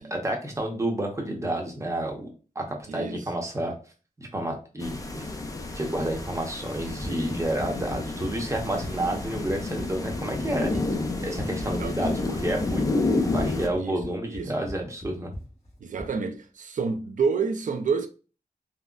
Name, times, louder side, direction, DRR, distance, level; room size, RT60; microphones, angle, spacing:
voice 1, 0.1-2.3 2.5-3.7 4.2-5.2 5.7-15.3, right 1 dB, 20° right, 0.8 m, -30 dB
voice 2, 2.9-3.2 8.9-9.2 10.7-10.8 11.4-11.5 11.8-11.9 13.7-14.0 14.3-14.6 15.8-18.1, right 5 dB, 60° right, 0.4 m, -29 dB
sound 1, 4.8-13.7, left 2 dB, 20° left, 0.5 m, -30 dB
Run, 6.7-16.2, equal, 45° left, 1.0 m, -40 dB
3.8 x 2.1 x 2.3 m
wide cardioid pair, 105°, 15 cm